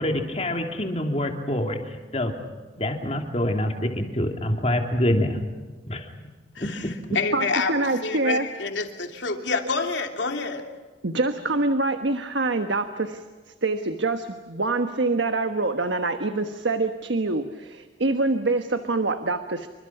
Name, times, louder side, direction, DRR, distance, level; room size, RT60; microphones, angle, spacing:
voice 1, 0.0-2.4 2.8-5.4 5.9-6.1 6.6-6.9, left 1 dB, 35° left, 3 dB, 2.9 m, -26 dB
voice 2, 6.5-10.7, left 4 dB, 80° left, 4 dB, 3.1 m, -28 dB
voice 3, 7.3-8.5 11.0-13.2 13.6-19.7, right 2 dB, 80° right, 8 dB, 1.3 m, -25 dB
29.0 x 25.0 x 5.9 m, 1.4 s
head